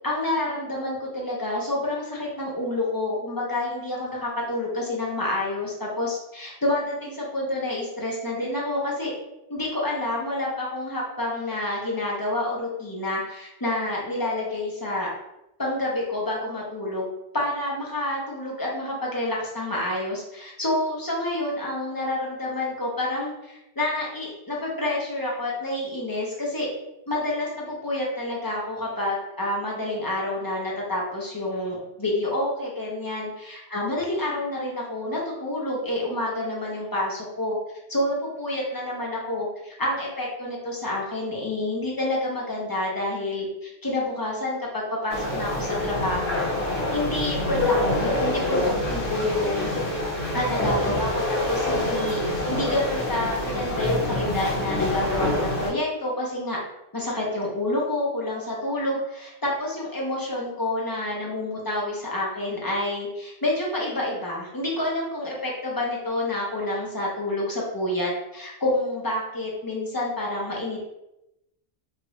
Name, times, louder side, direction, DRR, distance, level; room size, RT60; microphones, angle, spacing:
voice 1, 0.0-9.1 9.5-15.1 15.6-17.1 17.3-26.7 27.1-37.6 37.9-46.4 46.9-49.7 50.3-56.6 56.9-70.9, left 1 dB, 25° left, -4 dB, 0.6 m, -28 dB
sound 1, 45.1-55.7, left 1 dB, 85° left, 1.5 m, -26 dB
3.1 x 2.5 x 3.0 m, 0.87 s
omnidirectional pair, 1.2 m